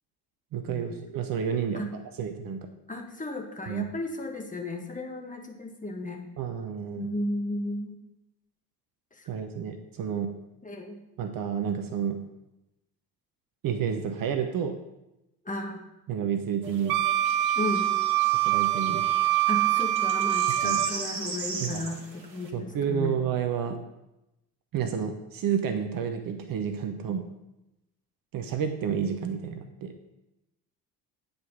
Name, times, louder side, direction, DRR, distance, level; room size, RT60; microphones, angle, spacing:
voice 1, 0.5-1.8 2.2-2.7 3.7-3.8 6.4-7.1 9.3-10.3 11.2-12.2 13.6-14.8 16.1-17.0 18.4-19.1 20.6-20.8 21.6-21.9 22.5-23.8 24.7-27.3 28.3-29.9, right 7 dB, 40° right, 7 dB, 1.0 m, -30 dB
voice 2, 2.9-6.2 7.0-8.0 9.2-9.3 10.6-11.0 15.4-15.8 17.5-18.0 19.5-23.2, left 1 dB, 15° left, 3 dB, 1.6 m, -34 dB
sound 1, 16.6-22.5, right 4 dB, 80° right, 1.3 m, -39 dB
Wind instrument woodwind instrument, 16.9-21.0, right 13 dB, 60° right, 0.6 m, -24 dB
9.1 x 5.2 x 5.9 m, 0.93 s
figure-of-eight pair, 55°, 50 cm